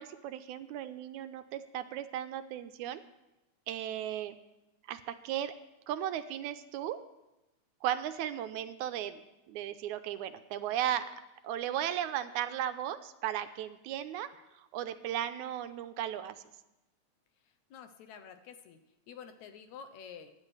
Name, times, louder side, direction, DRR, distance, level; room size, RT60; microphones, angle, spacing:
voice 1, 0.0-3.0 3.7-4.4 4.9-5.5 5.9-7.0 7.8-9.2 9.5-11.1 11.4-14.3 14.6-16.4, right 11 dB, 90° right, 10 dB, 2.1 m, -36 dB
voice 2, 17.7-18.8 19.1-20.3, left 7 dB, 75° left, 7 dB, 2.1 m, -49 dB
23.5 x 10.5 x 3.2 m, 0.96 s
omnidirectional pair, 3.4 m